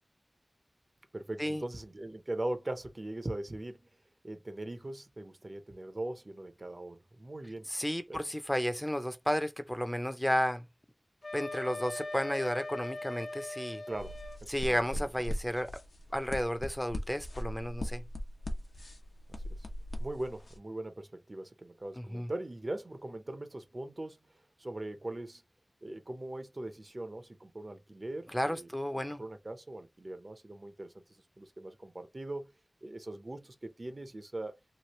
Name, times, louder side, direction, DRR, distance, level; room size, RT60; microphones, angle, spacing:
voice 1, 1.1-3.9 4.2-7.7 8.1-8.3 13.9-15.1 19.5-19.7 20.0-24.2 24.6-25.4 25.8-28.7 29.2-31.0 31.4-32.5 32.8-34.6, right 1 dB, 50° right, 0.6 m, -40 dB
voice 2, 7.7-10.6 11.3-13.8 14.5-15.7 16.1-18.0 22.1-22.3 28.3-29.2, equal, 10° left, 0.5 m, -32 dB
Wind instrument woodwind instrument, 11.2-14.4, left 2 dB, 55° left, 0.9 m, -40 dB
sound 1, 13.9-20.6, equal, 85° left, 0.7 m, -39 dB
3.1 x 2.4 x 3.0 m
wide cardioid pair, 50°, 0 cm